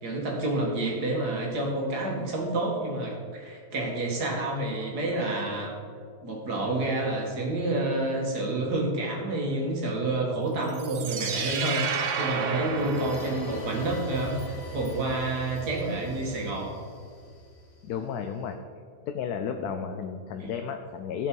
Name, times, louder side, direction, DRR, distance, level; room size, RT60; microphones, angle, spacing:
voice 1, 0.0-5.7 6.2-16.7 20.4-20.5, right 2 dB, 90° right, -2 dB, 2.3 m, -29 dB
sound 1, 10.7-13.8, right 6 dB, 60° right, 1.0 m, -31 dB
sound 2, 12.4-18.2, left 1 dB, 35° left, 2.4 m, -42 dB
voice 2, 17.8-18.6 19.1-21.3, left 7 dB, 80° left, 5 dB, 1.1 m, -33 dB
15.0 x 5.3 x 4.6 m, 2.2 s
omnidirectional pair, 1.7 m